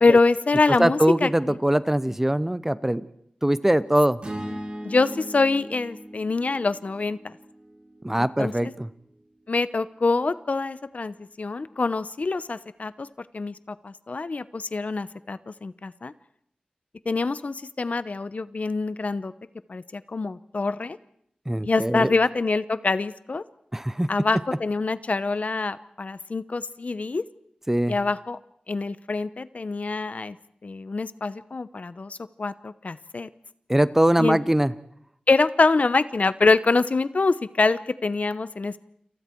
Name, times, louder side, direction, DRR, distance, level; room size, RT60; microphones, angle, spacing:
voice 1, 0.0-1.6 4.4-7.3 8.2-8.7 9.5-13.1 13.3-16.1 17.1-19.3 19.7-21.0 21.6-23.4 24.1-27.2 27.9-28.4 28.7-30.4 30.6-33.3 34.2-34.4 35.3-38.8, left 3 dB, 60° left, 14 dB, 0.9 m, -25 dB
voice 2, 0.8-3.1 3.4-4.2 8.0-8.9 21.5-22.1 23.7-24.1 27.7-27.9 33.7-34.7, right 1 dB, 15° right, 15 dB, 0.9 m, -22 dB
sound 1, 4.2-8.5, equal, 40° right, 7.3 m, -38 dB
29.0 x 27.5 x 4.6 m, 0.70 s
wide cardioid pair, 90°, 3 cm